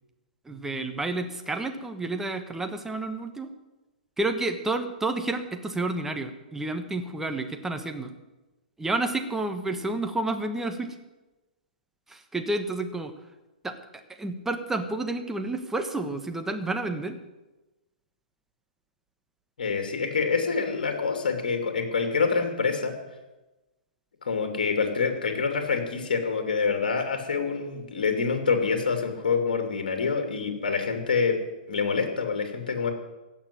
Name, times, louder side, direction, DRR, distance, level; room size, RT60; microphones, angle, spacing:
voice 1, 0.4-3.5 4.2-8.1 8.8-11.0 12.1-13.1 13.6-13.8 14.2-17.2, right 2 dB, 5° right, 6 dB, 1.3 m, -30 dB
voice 2, 19.6-22.9 24.2-31.4 31.7-32.9, left 5 dB, 65° left, 5 dB, 2.8 m, -26 dB
16.0 x 6.7 x 9.5 m, 1.1 s
figure-of-eight pair, 120°, 5 cm